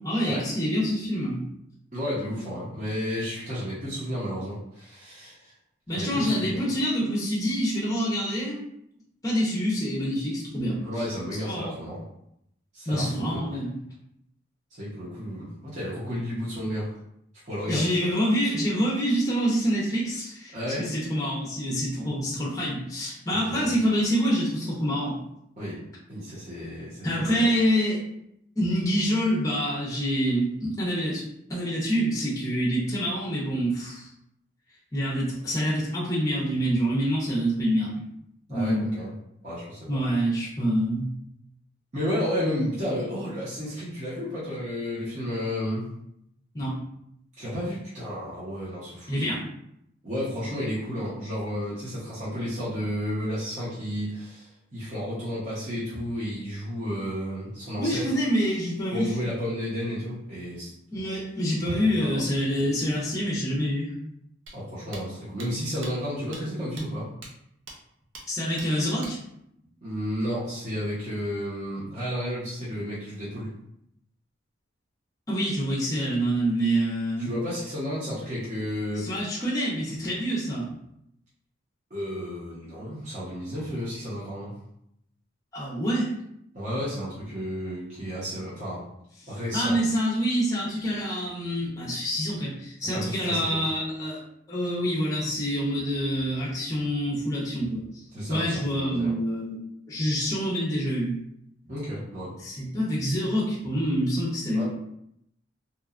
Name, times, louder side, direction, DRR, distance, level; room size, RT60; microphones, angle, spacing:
voice 1, 0.0-1.4 5.9-8.6 9.2-10.8 11.4-11.7 12.9-13.7 17.7-25.2 27.0-28.0 28.6-31.2 31.5-34.1 34.9-38.0 38.5-38.9 39.9-41.1 46.5-46.8 49.1-49.4 57.8-59.1 60.9-63.9 68.3-69.2 75.3-77.3 79.0-80.7 85.5-86.1 89.5-94.2 94.5-99.6 99.9-101.1 102.4-104.6, equal, 15° left, -6 dB, 0.6 m, -26 dB
voice 2, 1.9-5.5 5.9-6.6 10.8-12.0 12.7-13.4 14.7-16.9 17.4-18.1 20.5-20.9 23.3-23.7 25.6-25.8 26.1-27.5 38.5-39.1 39.4-40.0 41.9-45.9 47.4-49.3 50.0-58.1 58.9-60.7 61.6-62.2 64.5-67.1 69.8-73.5 77.2-79.3 81.9-84.5 86.5-88.8 89.3-89.8 92.8-93.7 98.1-99.1 101.7-102.3 104.5-104.6, equal, 35° right, -10 dB, 0.8 m, -32 dB
sound 1, 64.5-64.6 64.9-65.0 65.4-65.5 65.8-65.9 66.3-66.4 66.8-66.9 67.2-67.3 67.7-67.8 68.1-68.3 68.6-68.7 69.0-69.1, right 2 dB, 75° right, 0.6 m, -41 dB
2.8 x 2.2 x 2.4 m, 0.77 s
head